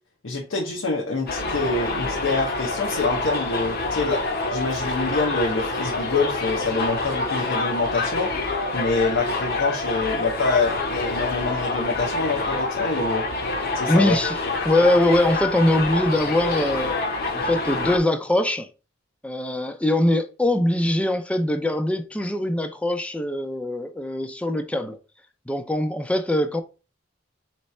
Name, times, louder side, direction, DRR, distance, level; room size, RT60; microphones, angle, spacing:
voice 1, 0.2-4.2 4.5-13.2 13.7-14.2, left 3 dB, 85° left, 0.9 m, -26 dB
Subway metro underground, 1.3-18.0, left 3 dB, 55° left, 0.8 m, -27 dB
voice 2, 13.9-14.3 14.6-17.0 17.3-18.7 19.2-25.0 25.5-26.6, left 1 dB, 5° left, 0.4 m, -22 dB
3.2 x 3.2 x 4.1 m
head